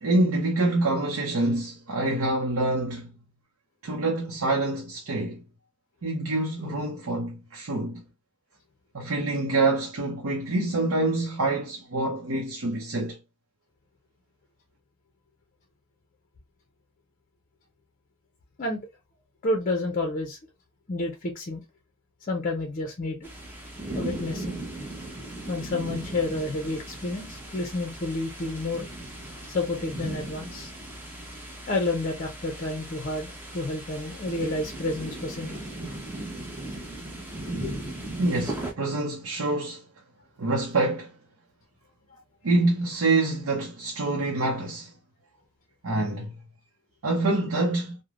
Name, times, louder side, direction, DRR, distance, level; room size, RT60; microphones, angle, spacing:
voice 1, 0.0-3.1 3.8-5.4 6.0-8.0 8.9-13.2 38.2-39.8 40.4-41.1 42.4-44.9 45.8-46.3 47.0-48.0, right 2 dB, 70° right, 0.6 m, -26 dB
voice 2, 19.4-20.4 20.9-21.6 22.3-23.3 23.9-24.5 25.5-28.9 29.5-30.7 31.7-36.0 37.6-37.8, left 2 dB, 40° left, 0.5 m, -30 dB
sound 1, 23.2-38.7, right 1 dB, 10° right, 0.7 m, -37 dB
3.2 x 2.1 x 2.4 m
head